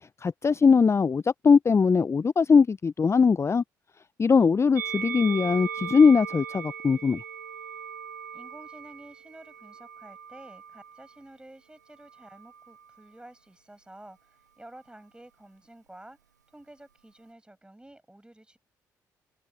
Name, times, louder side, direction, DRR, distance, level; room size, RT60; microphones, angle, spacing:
voice 1, 0.2-3.6 4.2-7.2, left 5 dB, 30° left, 0.6 m, -21 dB
Musical instrument, 4.7-11.2 12.0-13.0, right 8 dB, 90° right, 0.7 m, -39 dB
voice 2, 8.3-16.2 16.5-18.6, right 1 dB, 10° right, 6.8 m, -50 dB
open air
figure-of-eight pair, 45°, 9 cm